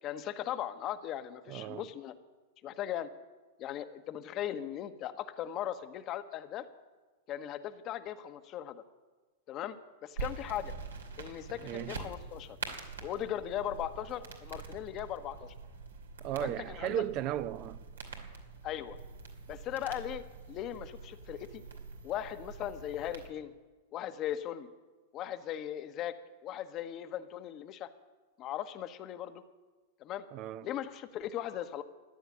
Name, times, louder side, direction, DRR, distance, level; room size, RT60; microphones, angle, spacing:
voice 1, 0.0-2.1 2.6-3.1 3.6-6.7 7.3-8.8 9.5-10.7 11.2-12.6 13.0-15.5 16.4-17.0 18.6-19.0 19.5-20.2 20.5-21.6 22.0-23.5 23.9-24.7 25.1-26.1 26.4-27.9 28.4-29.4 30.0-30.2 30.6-31.8, left 11 dB, 40° left, 1.1 m, -38 dB
voice 2, 1.5-1.9 11.6-12.0 16.2-17.8 30.3-30.7, right 12 dB, 45° right, 0.7 m, -35 dB
sound 1, 10.2-23.3, right 4 dB, 85° right, 2.6 m, -45 dB
14.5 x 9.3 x 9.8 m
hypercardioid pair, 105°, 0 cm